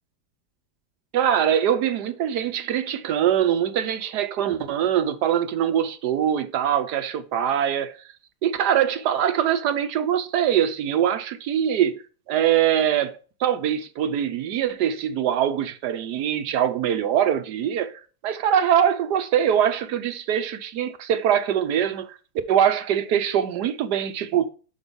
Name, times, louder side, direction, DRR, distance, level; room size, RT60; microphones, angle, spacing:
voice 1, 1.1-8.0 8.4-12.0 12.3-22.2 22.5-24.5, right 9 dB, 70° right, 1.2 m, -23 dB
5.6 x 5.3 x 5.2 m
omnidirectional pair, 2.0 m